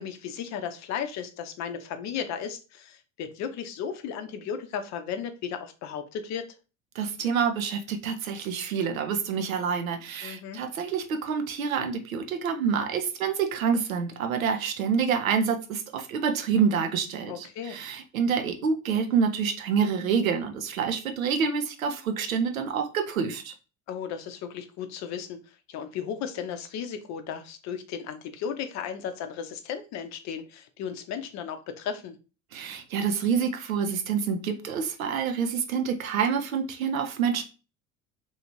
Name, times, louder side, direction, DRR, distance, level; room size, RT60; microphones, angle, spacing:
voice 1, 0.0-6.5 10.2-10.6 17.3-17.8 23.9-25.4 25.7-32.2, left 7 dB, 45° left, 9 dB, 0.5 m, -35 dB
voice 2, 7.0-23.5 32.5-37.4, right 6 dB, 85° right, 5 dB, 0.6 m, -27 dB
2.8 x 2.4 x 2.9 m, 0.33 s
figure-of-eight pair, 60°, 40 cm